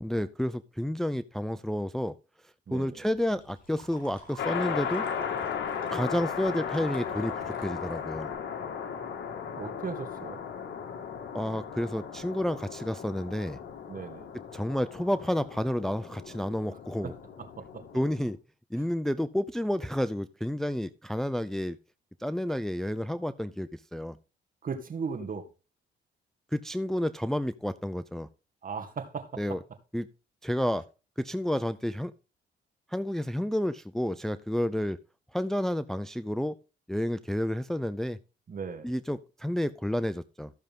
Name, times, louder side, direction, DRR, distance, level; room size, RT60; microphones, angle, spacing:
voice 1, 0.0-2.1 2.7-5.0 5.9-8.3 11.3-13.6 14.5-17.1 17.9-18.4 18.7-21.8 22.2-24.2 26.5-28.3 29.4-29.6 29.9-30.1 30.4-30.9 31.2-32.1 32.9-35.0 35.3-36.6 36.9-38.2 38.8-40.5, left 1 dB, ahead, 0.5 m, -30 dB
voice 2, 2.7-3.0 9.6-10.4 13.9-14.3 17.0-17.1 17.4-17.8 18.8-18.9 24.6-25.5 28.6-29.6 38.5-38.9, right 5 dB, 45° right, 2.0 m, -37 dB
sound 1, 3.1-8.3, left 1 dB, 45° left, 6.1 m, -48 dB
sound 2, 4.4-18.3, left 7 dB, 65° left, 2.0 m, -36 dB
14.5 x 6.6 x 3.7 m
cardioid pair, 90°, 20 cm